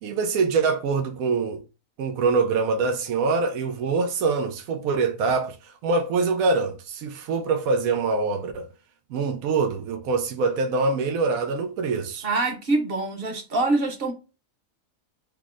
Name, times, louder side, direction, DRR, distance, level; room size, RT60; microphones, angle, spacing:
voice 1, 0.0-1.6 2.0-8.7 9.1-12.3, right 4 dB, 90° right, 1.0 m, -24 dB
voice 2, 12.2-14.1, right 2 dB, 50° right, 0.9 m, -24 dB
3.5 x 2.0 x 3.5 m
omnidirectional pair, 1.4 m